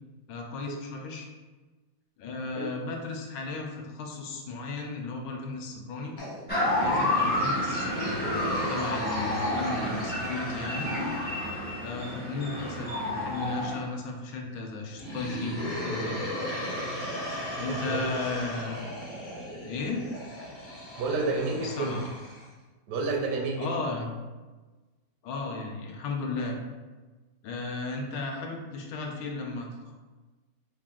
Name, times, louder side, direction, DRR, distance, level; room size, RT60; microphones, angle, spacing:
voice 1, 0.3-1.3 2.2-6.1 6.8-10.9 11.8-16.4 17.6-18.8 19.6-20.0 21.6-22.0 23.6-24.1 25.2-26.6 27.4-29.9, left 3 dB, 75° left, 1 dB, 1.2 m, -35 dB
sound 1, 6.2-11.4 14.9-22.5, equal, 45° left, 0.7 m, -37 dB
sound 2, 6.5-13.8, left 1 dB, 15° left, 0.3 m, -29 dB
voice 2, 17.7-18.0 18.3-18.4 21.0-21.9 22.9-23.7, right 3 dB, 70° right, 0 dB, 1.0 m, -30 dB
3.5 x 2.5 x 3.6 m, 1.3 s
omnidirectional pair, 2.1 m